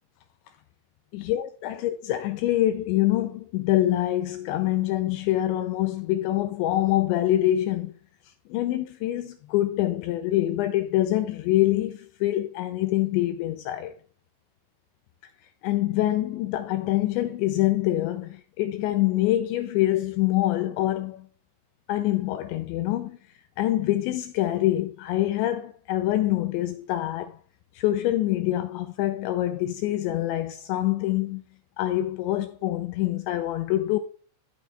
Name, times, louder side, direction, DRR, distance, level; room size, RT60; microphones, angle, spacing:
voice 1, 1.1-7.9 8.5-13.9 15.6-21.3 21.9-23.2 23.6-27.4 27.7-31.4 31.8-34.0, left 14 dB, 85° left, 2.6 m, -25 dB
13.0 x 6.2 x 3.3 m
omnidirectional pair, 5.8 m